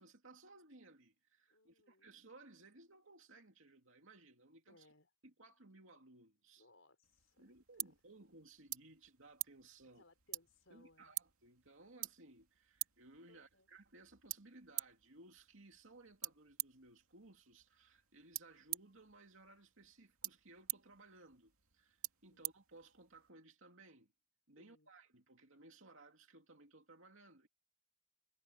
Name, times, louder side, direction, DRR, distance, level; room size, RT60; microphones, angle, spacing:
voice 1, 0.0-4.9 5.2-6.7 7.4-10.0 10.7-24.1 24.5-27.5, right 2 dB, 65° right, 2.6 m, -61 dB
voice 2, 1.5-2.1 4.7-5.1 6.6-7.8 9.9-11.1 13.3-13.7 22.3-22.5 24.6-24.9, left 2 dB, 65° left, 4.2 m, -68 dB
sound 1, 7.0-23.3, right 15 dB, 85° right, 2.5 m, -49 dB
head